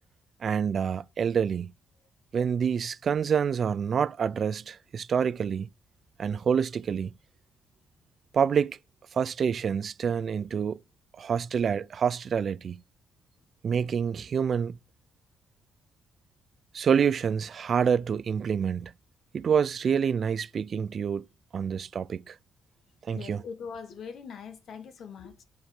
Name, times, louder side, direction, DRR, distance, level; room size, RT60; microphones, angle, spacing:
voice 1, 0.4-1.7 2.3-5.7 6.2-7.1 8.3-8.8 9.1-10.8 11.2-12.8 13.6-14.8 16.7-18.9 19.3-21.2 21.5-22.4 23.1-23.4, right 7 dB, 50° right, 0.3 m, -27 dB
voice 2, 23.1-25.4, left 6 dB, 65° left, 1.4 m, -42 dB
8.0 x 4.2 x 5.0 m
cardioid pair, 90°, 0 cm